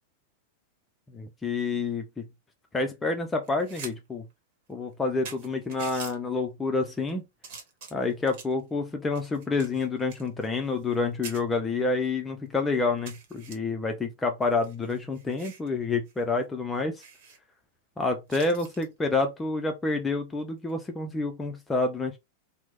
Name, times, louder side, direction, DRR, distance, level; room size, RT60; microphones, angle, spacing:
voice 1, 1.1-2.2 2.7-4.2 4.7-7.2 7.9-17.0 18.0-22.2, left 3 dB, 15° left, 0.5 m, -28 dB
sound 1, 3.4-3.9 4.3-4.4 4.9-5.0 5.2-6.1 6.8-7.1 7.4-8.6 9.1-11.0 11.2-11.4 12.0-12.1 12.4-12.5 13.0-13.5 14.4-15.7 16.1-16.2 16.5-16.6 17.0-17.4 18.3-18.9 20.6-20.8, right 5 dB, 55° right, 1.0 m, -44 dB
2.9 x 2.0 x 3.4 m
figure-of-eight pair, 95°, 0 cm